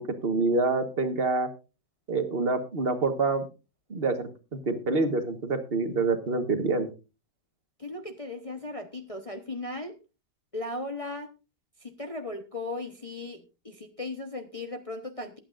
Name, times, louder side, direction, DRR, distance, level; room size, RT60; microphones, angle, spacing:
voice 1, 0.0-1.5 2.1-3.5 3.9-6.9, right 3 dB, 35° right, 7 dB, 1.5 m, -27 dB
voice 2, 7.8-9.9 10.5-11.3 11.8-15.4, left 2 dB, 25° left, 5 dB, 0.9 m, -37 dB
21.0 x 8.8 x 2.5 m, 0.30 s
omnidirectional pair, 1.9 m